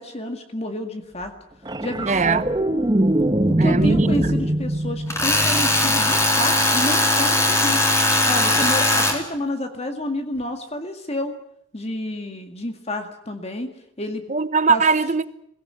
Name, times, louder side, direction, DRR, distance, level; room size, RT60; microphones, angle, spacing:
voice 1, 0.0-1.3 1.8-2.4 3.5-7.8 8.3-11.4 11.7-13.7 14.0-14.2 14.7-14.8, left 1 dB, 30° left, 2.0 m, -29 dB
sound 1, 1.6-6.1 8.5-8.7, right 1 dB, 20° right, 1.2 m, -22 dB
voice 2, 2.0-2.4 3.6-4.1 14.3-15.3, right 4 dB, 35° right, 1.0 m, -20 dB
Tools, 5.1-9.2, left 1 dB, 15° left, 3.4 m, -19 dB
21.5 x 18.0 x 9.7 m
head